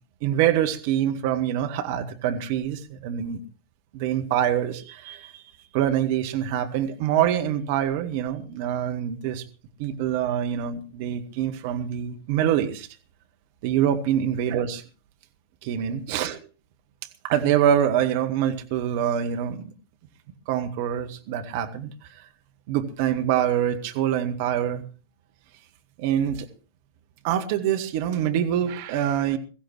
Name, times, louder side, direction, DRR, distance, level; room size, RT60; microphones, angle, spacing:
voice 1, 0.2-3.4 3.9-5.4 5.7-9.5 9.8-12.9 13.6-14.8 15.6-16.4 17.2-19.7 20.5-21.9 22.7-24.8 26.0-26.5 27.2-29.4, right 10 dB, 50° right, 7 dB, 1.8 m, -25 dB
22.0 x 15.5 x 3.1 m, 0.36 s
figure-of-eight pair, 90°, 0 cm